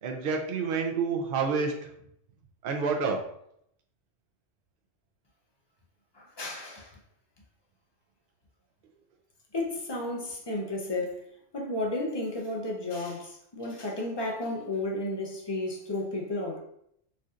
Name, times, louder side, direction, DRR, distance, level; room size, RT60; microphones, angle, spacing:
voice 1, 0.0-1.7 2.6-3.2, right 5 dB, 55° right, 3 dB, 0.7 m, -28 dB
voice 2, 6.1-7.0 9.5-11.2 11.5-16.6, left 2 dB, 35° left, -1 dB, 0.4 m, -33 dB
4.3 x 2.7 x 2.4 m, 0.71 s
omnidirectional pair, 1.3 m